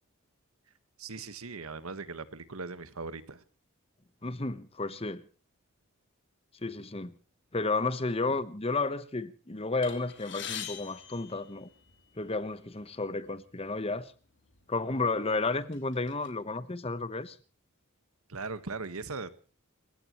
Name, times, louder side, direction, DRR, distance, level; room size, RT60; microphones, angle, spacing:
voice 1, 1.0-3.4 18.3-19.3, right 4 dB, 80° right, 1.5 m, -39 dB
voice 2, 4.2-5.2 6.6-7.1 7.5-11.7 12.2-14.1 14.7-17.4, left 3 dB, 25° left, 1.0 m, -32 dB
sound 1, 9.8-12.2 13.0-13.1 13.4-13.6 14.5-14.6 15.1-16.3, left 9 dB, 55° left, 3.4 m, -43 dB
29.0 x 16.0 x 3.1 m
head